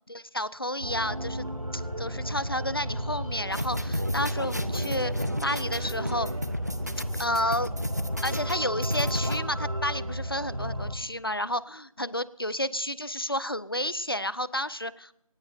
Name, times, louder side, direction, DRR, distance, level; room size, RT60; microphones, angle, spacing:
voice 1, 0.1-6.3 7.2-7.7 8.2-15.1, left 1 dB, 40° left, 19 dB, 0.6 m, -31 dB
sound 1, 0.8-11.0, equal, 80° right, 2.8 m, -33 dB
sound 2, 3.5-9.4, left 1 dB, 30° right, 0.7 m, -33 dB
23.0 x 19.0 x 2.6 m, 0.77 s
figure-of-eight pair, 175°, 18 cm